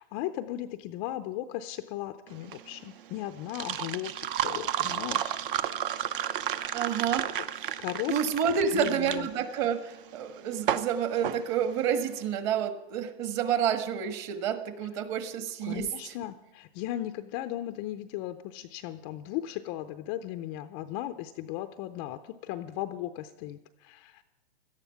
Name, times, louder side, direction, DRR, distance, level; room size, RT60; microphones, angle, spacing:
voice 1, 0.0-5.4 6.5-6.9 7.8-8.1 8.7-9.4 15.6-24.2, left 13 dB, 25° left, 9 dB, 0.5 m, -37 dB
sound 1, 2.3-12.2, right 10 dB, 55° right, 0.9 m, -33 dB
voice 2, 6.7-7.4 8.1-16.1, right 7 dB, 30° right, 9 dB, 1.5 m, -29 dB
17.0 x 13.0 x 5.8 m, 1.1 s
hypercardioid pair, 145°, 33 cm